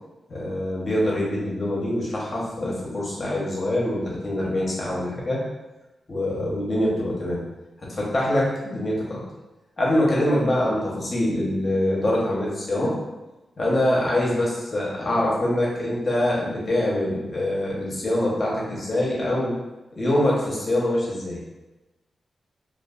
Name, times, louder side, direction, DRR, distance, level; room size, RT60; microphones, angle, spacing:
voice 1, 0.3-5.4 6.1-7.4 7.8-9.2 9.8-13.0 13.6-19.6 20.0-21.4, left 1 dB, 45° left, -5 dB, 0.8 m, -24 dB
2.4 x 2.3 x 2.4 m, 1.1 s
cardioid pair, 75°, 0 cm